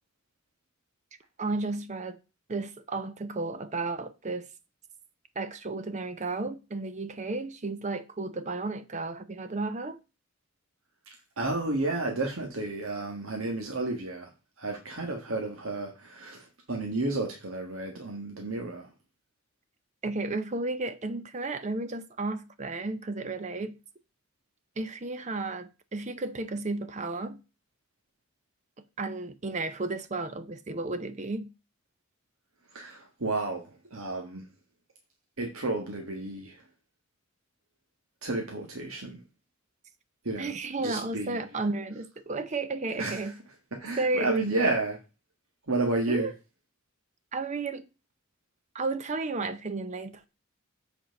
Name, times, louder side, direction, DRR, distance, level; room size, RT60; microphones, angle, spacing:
voice 1, 1.4-2.2 2.5-4.5 5.4-10.0 20.0-23.8 24.8-27.4 29.0-31.5 40.4-43.4 44.0-44.3 46.1-46.3 47.3-47.8 48.7-50.3, right 3 dB, 35° right, 0.6 m, -33 dB
voice 2, 11.4-14.3 14.6-18.9 32.7-34.5 35.4-36.6 38.2-39.2 40.2-40.5 40.8-41.4 43.0-43.3 43.8-45.0 45.7-46.3, right 2 dB, 85° right, 1.5 m, -31 dB
8.1 x 4.4 x 5.2 m
head